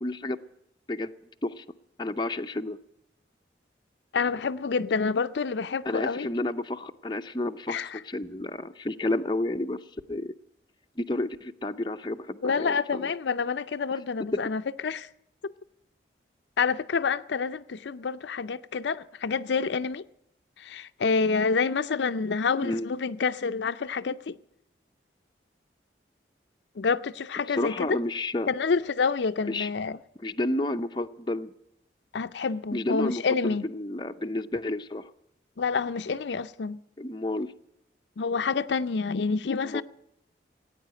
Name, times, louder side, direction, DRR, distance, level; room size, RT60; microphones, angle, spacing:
voice 1, 0.0-0.4 0.9-1.1 1.4-1.6 2.0-2.8 5.9-10.3 11.0-13.1 22.6-22.9 27.5-28.5 29.5-29.7 30.2-31.5 32.7-35.1 37.0-37.5 39.6-39.8, left 2 dB, 25° left, 0.5 m, -31 dB
voice 2, 4.1-6.3 7.7-8.0 12.4-15.1 15.4-15.5 16.6-20.0 20.6-24.4 26.8-28.0 28.5-30.0 32.1-33.6 35.6-36.8 38.2-39.8, left 5 dB, 75° left, 0.5 m, -28 dB
16.5 x 9.1 x 9.1 m
head